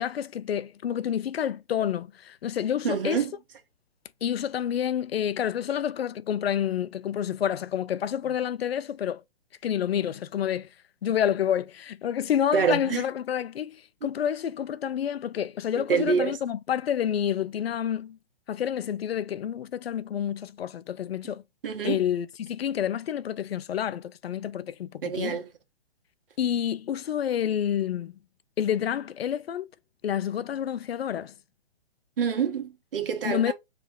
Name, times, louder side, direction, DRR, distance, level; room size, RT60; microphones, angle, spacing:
voice 1, 0.0-3.2 4.2-9.2 9.6-10.7 11.0-18.2 18.5-21.4 21.8-25.4 26.4-28.1 28.6-29.7 30.0-31.3 33.2-33.5, left 9 dB, 75° left, 0.6 m, -28 dB
voice 2, 2.8-3.3 12.5-13.0 14.0-14.1 15.9-16.4 21.6-22.0 25.0-25.5 32.2-33.5, right 6 dB, 60° right, 1.4 m, -26 dB
4.0 x 3.4 x 3.6 m
hypercardioid pair, 140°, 31 cm